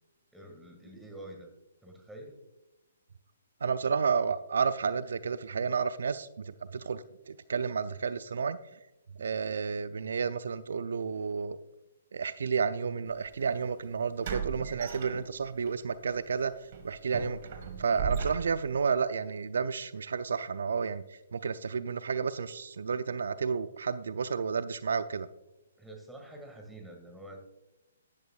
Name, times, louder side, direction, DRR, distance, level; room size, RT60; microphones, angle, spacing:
voice 1, 0.3-1.5 1.8-2.4 14.5-14.8 25.8-27.4, right 1 dB, 5° right, 2 dB, 1.9 m, -47 dB
voice 2, 3.6-8.8 9.2-11.6 12.1-16.5 16.8-17.4 17.8-25.3, right 5 dB, 70° right, 14 dB, 0.4 m, -31 dB
sound 1, 13.1-13.3 14.2-15.7 16.1-16.3 16.7-18.8, right 6 dB, 50° right, 1.7 m, -37 dB
13.0 x 11.0 x 2.4 m, 0.97 s
figure-of-eight pair, 130°, 0 cm